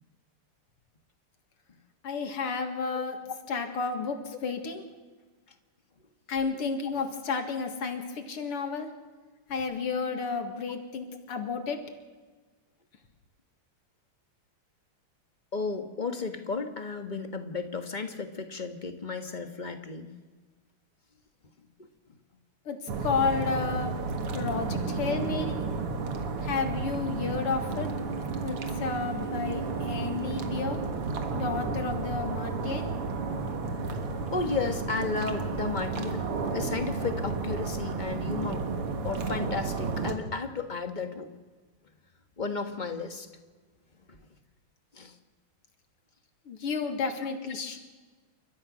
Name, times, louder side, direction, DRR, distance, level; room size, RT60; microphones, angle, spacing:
voice 1, 2.0-3.2 3.5-4.8 6.3-8.9 9.5-11.8 22.7-23.9 24.3-25.6 26.4-27.9 28.4-30.8 31.3-32.9 46.5-47.8, left 5 dB, 85° left, 5 dB, 2.9 m, -31 dB
voice 2, 2.9-3.3 15.5-20.1 33.3-33.4 34.3-36.3 36.5-38.7 39.0-41.3 42.4-43.3 44.9-45.1, left 4 dB, 25° left, 6 dB, 1.3 m, -33 dB
sound 1, 22.9-40.2, right 4 dB, 85° right, 2.6 m, -32 dB
30.0 x 13.5 x 6.3 m, 1.4 s
omnidirectional pair, 2.4 m